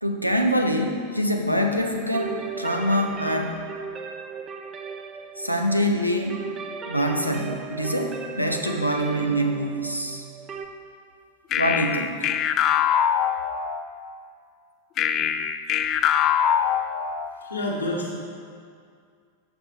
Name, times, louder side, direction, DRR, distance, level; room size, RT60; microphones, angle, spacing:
voice 1, 0.0-3.7 5.4-6.5 6.8-10.2 11.6-12.3, equal, 90° right, 3 dB, 0.7 m, -25 dB
sound 1, 2.1-10.7, right 5 dB, 25° right, 0.6 m, -37 dB
sound 2, 11.5-14.0 15.0-17.5, left 9 dB, 35° left, 0.4 m, -23 dB
voice 2, 17.4-18.1, left 1 dB, 75° left, -3 dB, 1.6 m, -28 dB
10.0 x 6.9 x 3.6 m, 2.2 s
figure-of-eight pair, 90°, 0 cm